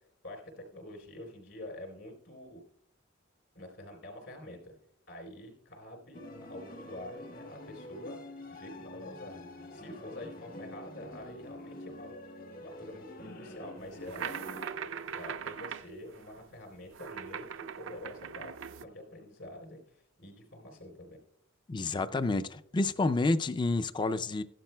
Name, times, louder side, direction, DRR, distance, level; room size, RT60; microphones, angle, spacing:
voice 1, 0.2-2.6 3.5-4.8 5.1-8.2 8.5-9.4 9.7-12.2 12.6-14.3 14.8-21.2, left 1 dB, 65° left, 4.0 m, -47 dB
sound 1, 6.1-14.7, left 1 dB, 45° left, 1.3 m, -47 dB
sound 2, 13.9-18.8, right 7 dB, 70° right, 0.5 m, -40 dB
voice 2, 21.7-24.4, left 2 dB, 25° left, 0.4 m, -29 dB
15.0 x 11.5 x 2.2 m
head